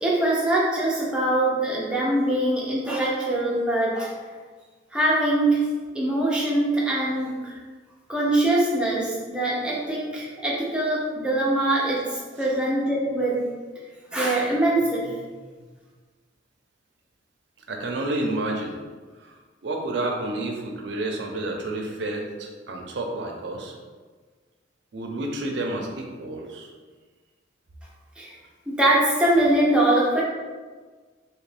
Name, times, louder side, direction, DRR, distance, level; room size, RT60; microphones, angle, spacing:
voice 1, 0.0-4.1 4.9-5.6 5.9-7.5 8.1-12.0 12.4-13.4 14.1-15.1 28.2-28.3 28.7-30.2, right 1 dB, 5° right, -5 dB, 0.6 m, -23 dB
voice 2, 17.7-18.7 19.6-23.7 24.9-26.7, right 2 dB, 65° right, 1 dB, 0.5 m, -30 dB
2.9 x 2.5 x 3.3 m, 1.4 s
head